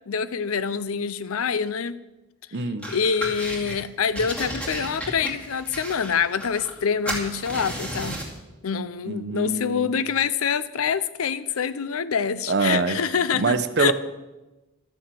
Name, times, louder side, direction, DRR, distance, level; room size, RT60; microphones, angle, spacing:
voice 1, 0.1-1.9 2.9-8.2 8.6-13.9, left 6 dB, 85° left, 16 dB, 0.6 m, -26 dB
voice 2, 2.5-2.9 9.1-9.9 12.5-13.0 13.3-13.9, right 3 dB, 55° right, 11 dB, 0.8 m, -24 dB
sound 1, 2.8-3.8 4.1-6.8 7.1-8.4, right 1 dB, 5° left, 2.4 m, -33 dB
12.0 x 7.2 x 7.6 m, 1.1 s
head